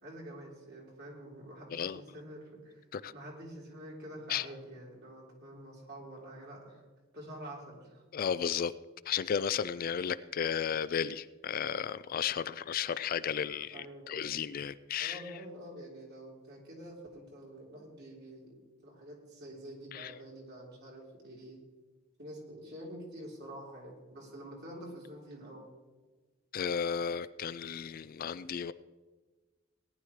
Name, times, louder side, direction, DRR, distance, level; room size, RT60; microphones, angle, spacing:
voice 1, 0.0-2.8 3.1-6.8 7.1-8.0 13.7-14.3 15.0-18.5 18.8-21.6 22.2-25.7, right 1 dB, 55° right, 3.6 m, -47 dB
voice 2, 1.7-2.0 2.9-3.1 4.3-4.5 8.1-8.7 9.1-15.2 19.9-20.1 26.5-28.7, left 7 dB, 45° left, 0.3 m, -34 dB
18.0 x 11.0 x 3.2 m
head